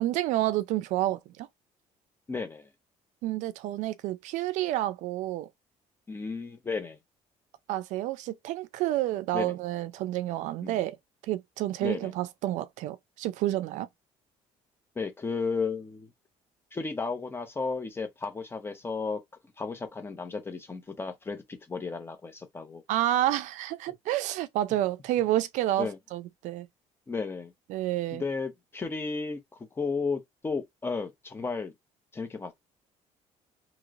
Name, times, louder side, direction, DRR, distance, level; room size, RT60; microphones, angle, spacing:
voice 1, 0.0-1.5 3.2-5.5 7.7-11.0 11.2-13.9 22.9-26.7 27.7-28.2, right 14 dB, 75° right, 0.4 m, -29 dB
voice 2, 2.3-2.7 6.1-7.0 9.3-9.5 10.6-10.8 11.8-12.1 15.0-16.1 16.7-19.2 19.6-22.8 25.8-26.0 27.1-27.5 28.1-31.7 32.1-32.5, left 4 dB, 20° left, 0.8 m, -33 dB
3.1 x 3.0 x 2.4 m
cardioid pair, 140°, 12 cm